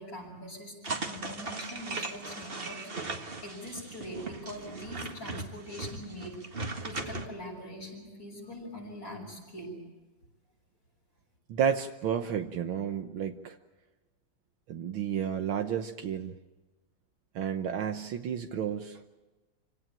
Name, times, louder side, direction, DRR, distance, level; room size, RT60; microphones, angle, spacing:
voice 1, 0.0-2.8 3.4-6.4 6.8-9.8, equal, 60° left, -4 dB, 7.3 m, -42 dB
sound 1, 0.8-7.3, right 3 dB, 30° right, 1.7 m, -38 dB
voice 2, 11.5-13.6 14.7-16.4 17.4-19.0, right 8 dB, 70° right, 7 dB, 1.8 m, -31 dB
27.0 x 17.0 x 8.9 m, 1.2 s
omnidirectional pair, 2.4 m